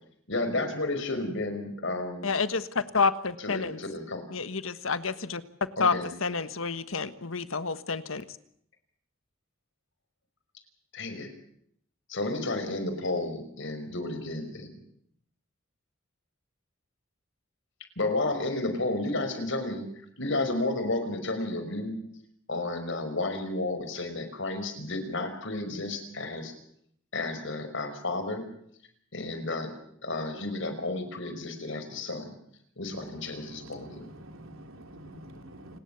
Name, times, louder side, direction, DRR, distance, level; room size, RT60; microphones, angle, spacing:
voice 1, 0.3-2.3 3.4-4.3 5.8-6.1 10.9-11.3 12.1-14.7 18.0-19.9 20.2-22.0 22.5-26.5 27.1-28.5 29.1-29.7 30.0-32.3 32.8-34.1, left 2 dB, 65° left, 5.3 m, -32 dB
voice 2, 2.2-3.8 4.3-5.4 5.8-5.9 6.2-8.3, left 4 dB, 80° left, 1.5 m, -29 dB
voice 3, 32.9-35.8, right 1 dB, 85° right, 3.2 m, -47 dB
28.5 x 19.5 x 7.1 m
head